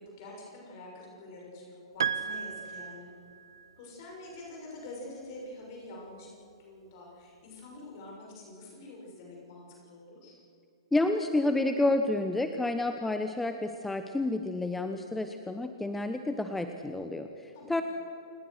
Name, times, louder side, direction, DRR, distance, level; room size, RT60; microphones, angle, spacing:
voice 1, 0.0-3.1 3.8-10.4 17.5-17.8, left 2 dB, 45° left, -1 dB, 6.6 m, -46 dB
Piano, 2.0-3.7, right 7 dB, 65° right, 0.8 m, -34 dB
voice 2, 10.9-17.8, left 2 dB, 5° left, 7 dB, 1.0 m, -30 dB
28.5 x 19.0 x 6.5 m, 2.8 s
figure-of-eight pair, 110°, 3 cm